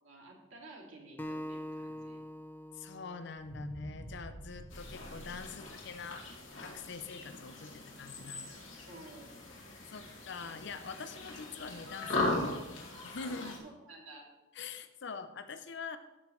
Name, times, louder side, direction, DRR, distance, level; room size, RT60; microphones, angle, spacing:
voice 1, 0.0-2.2 8.9-9.3 13.4-14.2, right 2 dB, 75° right, -1 dB, 2.3 m, -52 dB
Acoustic guitar, 1.2-4.5, left 1 dB, 10° left, 0.4 m, -44 dB
voice 2, 2.7-6.2 6.6-8.7 9.9-13.6 14.5-16.0, left 5 dB, 60° left, 10 dB, 0.6 m, -44 dB
sound 1, 3.4-7.6 8.1-8.2, right 1 dB, 40° right, 1.0 m, -49 dB
sound 2, 4.7-13.6, left 2 dB, 80° left, 2.3 m, -39 dB
13.5 x 7.0 x 3.1 m, 1.0 s
head